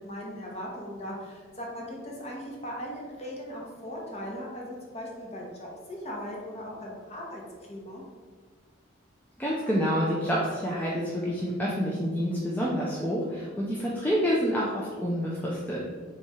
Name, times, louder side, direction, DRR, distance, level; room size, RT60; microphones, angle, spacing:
voice 1, 0.0-7.4 7.7-8.0, equal, 30° left, -2 dB, 0.8 m, -38 dB
voice 2, 9.4-15.9, equal, 10° left, -6 dB, 0.4 m, -28 dB
3.5 x 3.1 x 4.2 m, 1.5 s
head